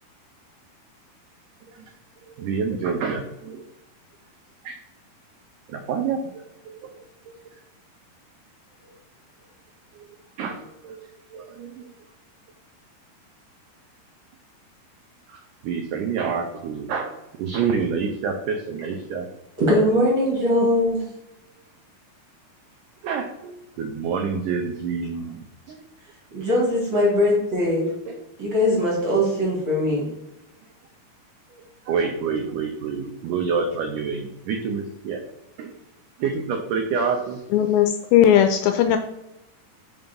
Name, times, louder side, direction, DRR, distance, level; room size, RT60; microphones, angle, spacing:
voice 1, 2.3-3.6 4.6-4.8 5.7-6.9 7.3-7.4 10.0-10.1 10.4-11.9 15.3-17.1 17.4-19.3 23.0-25.4 25.7-25.8 28.1-28.2 31.5-35.2 35.6-35.8 36.2-37.4, right 5 dB, 85° right, 4 dB, 1.8 m, -28 dB
voice 2, 19.6-21.0 26.3-27.9 28.4-30.1, left 1 dB, 40° right, -3 dB, 1.9 m, -21 dB
voice 3, 37.5-39.0, left 10 dB, 85° left, 7 dB, 2.1 m, -17 dB
5.6 x 4.6 x 5.2 m, 0.91 s
omnidirectional pair, 4.5 m